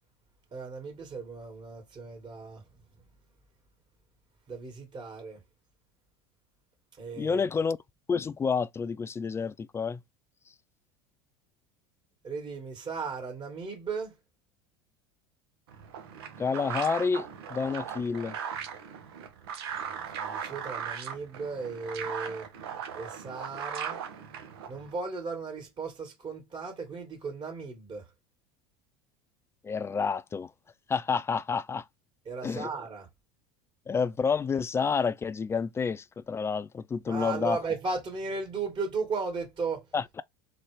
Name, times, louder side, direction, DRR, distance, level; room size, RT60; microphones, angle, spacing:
voice 1, 0.5-2.6 4.5-5.4 7.0-7.4 12.2-14.2 19.8-22.5 22.9-24.0 24.7-28.1 32.3-33.1 37.0-39.9, right 4 dB, 35° right, 2.3 m, -36 dB
voice 2, 7.2-7.8 8.1-10.0 16.4-18.4 29.6-30.5 30.9-31.8 32.4-32.7 33.9-37.6 39.9-40.2, left 5 dB, 20° left, 0.4 m, -29 dB
sound 1, 15.7-24.9, right 7 dB, 75° right, 1.2 m, -38 dB
3.9 x 3.5 x 3.4 m
hypercardioid pair, 80°, 13 cm